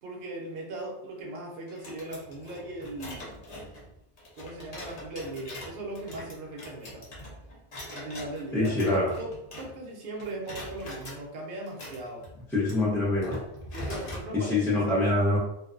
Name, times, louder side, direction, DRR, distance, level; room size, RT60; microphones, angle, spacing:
voice 1, 0.0-3.4 4.4-7.1 7.9-12.3 13.7-15.1, right 2 dB, 55° right, 0 dB, 0.7 m, -38 dB
sound 1, 1.7-9.9 10.2-11.2 11.7-14.3, left 1 dB, 45° left, 0.6 m, -43 dB
voice 2, 8.5-9.1 12.5-13.4 14.3-15.4, left 2 dB, ahead, -8 dB, 0.6 m, -25 dB
2.4 x 2.2 x 2.4 m, 0.80 s
omnidirectional pair, 1.2 m